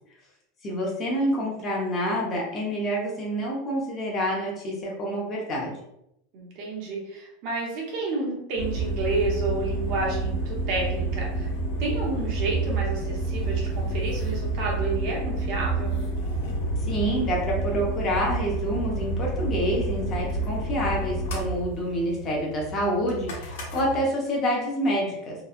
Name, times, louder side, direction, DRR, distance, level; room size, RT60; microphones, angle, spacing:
voice 1, 0.6-5.7 16.9-25.4, equal, 20° left, -2 dB, 0.5 m, -27 dB
voice 2, 6.3-11.5 11.8-16.0, right 3 dB, 45° right, -2 dB, 0.7 m, -30 dB
sound 1, 8.6-24.0, right 2 dB, 75° left, 0.9 m, -29 dB
2.8 x 2.2 x 2.3 m, 0.80 s
supercardioid pair, 180°, 0 cm